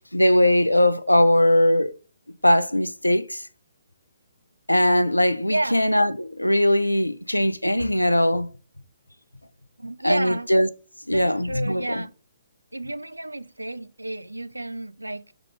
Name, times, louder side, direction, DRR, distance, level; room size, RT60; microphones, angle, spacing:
voice 1, 0.1-1.9 2.4-3.4 4.7-8.5 10.0-10.7 11.1-12.0, left 1 dB, 85° left, 0.4 m, -20 dB
voice 2, 5.5-5.8 9.8-10.5 11.1-12.1 12.7-15.3, right 2 dB, 80° right, 0.3 m, -31 dB
3.7 x 2.9 x 4.8 m
figure-of-eight pair, 125°, 0 cm